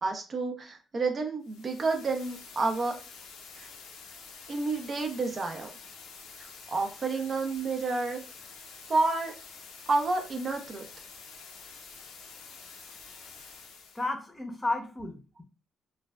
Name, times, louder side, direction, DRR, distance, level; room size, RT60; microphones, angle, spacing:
voice 1, 0.0-2.9 3.5-3.7 4.5-5.7 6.4-8.2 8.9-9.3 9.9-10.8, right 3 dB, 40° right, 4 dB, 0.5 m, -30 dB
sound 1, 1.4-14.1, left 5 dB, 85° left, 0.5 m, -48 dB
voice 2, 13.9-15.4, left 2 dB, 20° left, 4 dB, 0.7 m, -33 dB
3.1 x 2.2 x 2.2 m, 0.34 s
cardioid pair, 90°, 0 cm